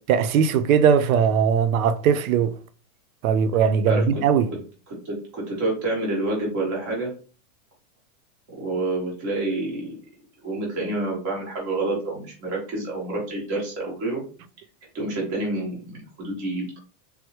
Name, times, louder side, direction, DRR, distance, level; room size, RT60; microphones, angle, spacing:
voice 1, 0.1-2.6 3.2-4.5, right 7 dB, 70° right, 0.5 m, -20 dB
voice 2, 3.9-4.2 5.0-7.1 8.6-9.9 10.4-14.2 14.9-16.8, right 2 dB, 15° right, 0.4 m, -28 dB
3.5 x 2.1 x 2.9 m
supercardioid pair, 175°, 44 cm